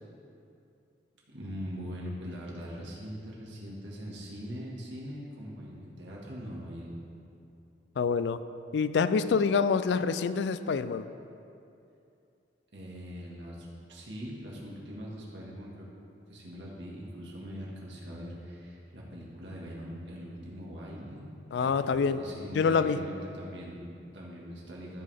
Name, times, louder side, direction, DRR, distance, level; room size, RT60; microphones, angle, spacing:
voice 1, 1.3-7.0 12.7-15.9 16.3-21.2 21.6-25.0, equal, 80° right, -4 dB, 1.8 m, -42 dB
voice 2, 8.0-8.4 8.7-11.1 21.5-22.2 22.6-23.0, left 5 dB, 70° left, 13 dB, 0.3 m, -26 dB
13.5 x 5.6 x 3.5 m, 2.6 s
head